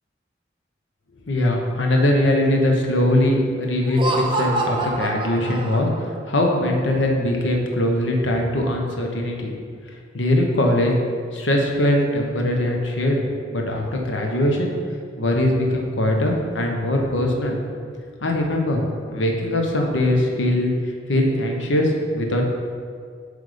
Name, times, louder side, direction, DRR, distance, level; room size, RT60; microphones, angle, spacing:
voice 1, 1.3-9.5 9.9-10.9 11.3-13.2 13.5-14.7 15.2-17.6 18.2-18.8 19.1-22.4, left 1 dB, 85° left, 1 dB, 1.0 m, -21 dB
Laughter, 3.8-6.2, right 2 dB, 25° right, 0.5 m, -26 dB
7.7 x 3.5 x 5.0 m, 2.1 s
head